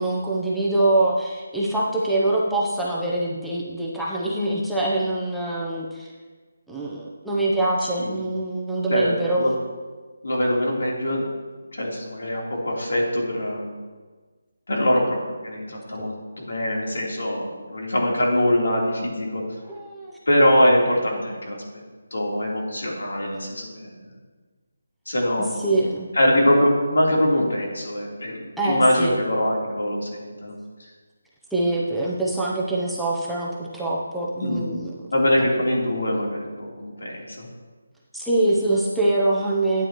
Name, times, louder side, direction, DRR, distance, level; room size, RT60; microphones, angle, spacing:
voice 1, 0.0-6.1 6.7-9.5 16.0-16.1 19.7-20.2 25.6-26.1 28.6-29.2 31.5-35.0 35.4-35.5 38.1-39.9, right 2 dB, ahead, -7 dB, 0.6 m, -24 dB
voice 2, 8.9-9.5 10.2-11.2 11.7-13.7 14.7-19.4 20.3-21.6 22.1-23.9 25.1-25.7 26.1-30.5 34.4-34.7 35.1-37.5, left 1 dB, 85° left, -3 dB, 3.3 m, -23 dB
12.0 x 9.3 x 3.0 m, 1.4 s
hypercardioid pair, 175°, 0 cm